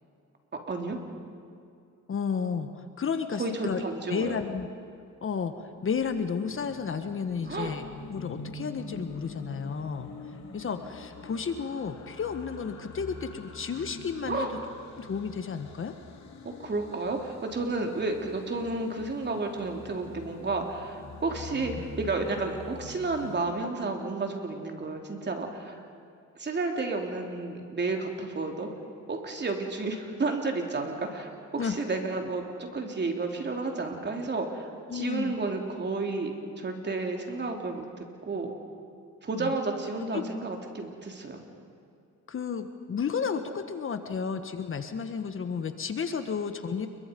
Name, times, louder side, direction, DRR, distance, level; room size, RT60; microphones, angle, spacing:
voice 1, 0.7-1.0 3.4-4.4 7.5-7.8 14.3-14.5 16.4-25.8 26.4-28.7 29.1-36.3 36.6-37.9 38.2-38.5 39.2-41.4, right 3 dB, 35° right, 2 dB, 3.4 m, -31 dB
voice 2, 2.1-2.7 3.0-3.8 4.1-4.7 5.2-10.1 10.5-14.5 15.0-15.9 31.6-31.8 34.9-35.3 39.3-39.5 40.1-40.3 42.3-46.9, left 6 dB, 45° left, 8 dB, 1.5 m, -32 dB
sound 1, 5.3-23.4, left 3 dB, 65° left, 3.4 m, -45 dB
29.0 x 22.5 x 5.4 m, 2.5 s
cardioid pair, 90°, 30 cm